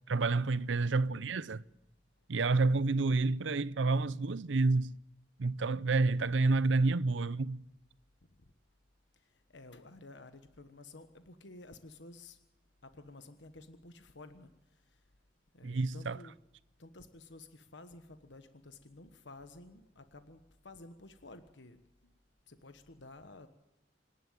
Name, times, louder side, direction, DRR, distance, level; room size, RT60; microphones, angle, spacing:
voice 1, 0.1-1.6 2.3-4.9 5.4-7.6 15.6-16.2, right 3 dB, 80° right, 0.6 m, -29 dB
voice 2, 9.1-12.4 12.8-15.1 15.5-16.4 16.8-22.1 22.5-23.5, left 2 dB, 75° left, 1.3 m, -53 dB
26.0 x 11.0 x 9.2 m
head